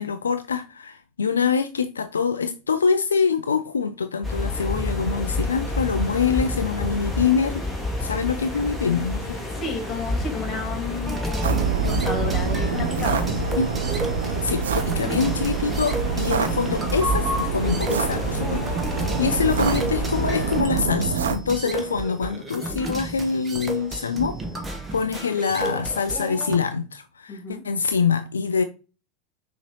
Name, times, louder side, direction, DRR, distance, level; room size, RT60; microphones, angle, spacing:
voice 1, 0.0-7.7 8.0-9.4 13.6-13.7 14.4-28.6, left 5 dB, 75° left, 0.3 m, -25 dB
sound 1, 4.2-20.6, left 2 dB, ahead, 1.6 m, -30 dB
voice 2, 9.6-13.3 27.3-27.6, left 3 dB, 30° left, 1.9 m, -32 dB
sound 2, 11.1-26.5, right 1 dB, 15° right, 1.1 m, -32 dB
sound 3, 11.4-21.4, right 6 dB, 70° right, 0.5 m, -26 dB
6.0 x 2.8 x 3.0 m
figure-of-eight pair, 80°, 0 cm